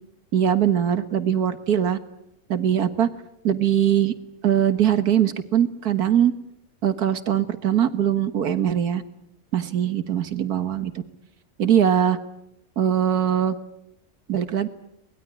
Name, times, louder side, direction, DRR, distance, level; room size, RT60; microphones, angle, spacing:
voice 1, 0.3-2.0 2.5-3.1 3.4-4.1 4.4-6.3 6.8-9.0 9.5-10.9 11.6-12.2 12.8-13.6 14.3-14.7, right 9 dB, 80° right, 12 dB, 1.9 m, -21 dB
23.5 x 20.5 x 9.9 m, 0.80 s
omnidirectional pair, 1.6 m